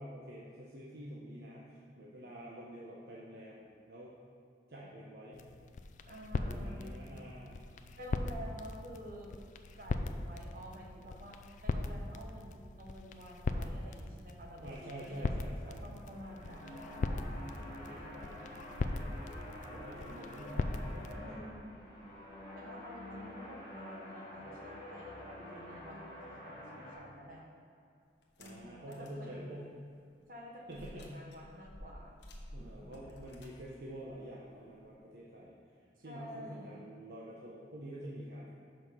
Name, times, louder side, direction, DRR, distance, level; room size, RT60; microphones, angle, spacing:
voice 1, 0.0-4.1 4.7-5.4 6.4-7.6 14.6-15.9 19.7-21.5 28.4-29.7 30.7-31.1 32.5-35.5 36.0-38.5, right 1 dB, 65° right, -5 dB, 0.9 m, -47 dB
sound 1, 5.3-21.1, left 2 dB, 45° left, 0.3 m, -40 dB
voice 2, 6.0-7.4 8.0-9.4 9.8-15.3 15.6-18.9 21.1-22.0 22.5-27.4 28.4-29.5 30.3-32.2 32.6-32.9 36.0-36.8, equal, 50° right, -1 dB, 1.1 m, -50 dB
sound 2, 15.9-26.9, left 1 dB, 25° left, 2.0 m, -48 dB
sound 3, 28.2-29.2 29.7-29.8 30.7-35.0, equal, 90° left, 0.9 m, -52 dB
6.2 x 5.1 x 6.1 m, 2.4 s
head